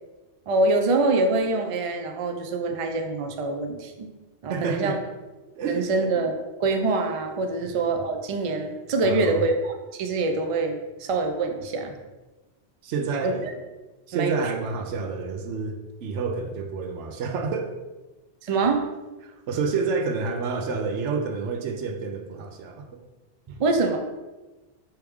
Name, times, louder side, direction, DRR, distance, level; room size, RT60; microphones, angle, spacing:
voice 1, 0.5-4.1 4.4-5.0 5.7-6.3 6.6-9.5 9.9-11.9 13.2-13.5 14.1-14.4 18.4-18.8 23.6-24.0, right 3 dB, 50° right, 5 dB, 0.4 m, -25 dB
voice 2, 4.5-5.0 5.6-5.9 7.6-7.7 9.0-9.4 11.9-12.0 12.8-13.6 14.1-17.8 19.2-23.0, right 4 dB, 90° right, 5 dB, 0.9 m, -29 dB
4.7 x 3.1 x 3.5 m, 1.1 s
omnidirectional pair, 1.2 m